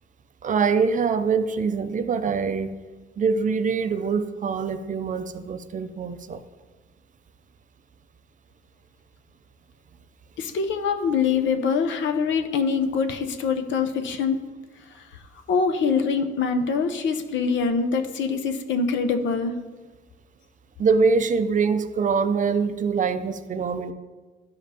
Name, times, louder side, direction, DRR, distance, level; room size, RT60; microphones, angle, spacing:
voice 1, 0.4-2.7 3.2-6.4 20.8-23.9, right 5 dB, 40° right, 11 dB, 0.5 m, -24 dB
voice 2, 10.4-14.4 14.9-15.1 15.5-19.6, left 5 dB, 70° left, 6 dB, 0.7 m, -24 dB
12.0 x 5.1 x 2.8 m, 1.3 s
cardioid pair, 90°, 20 cm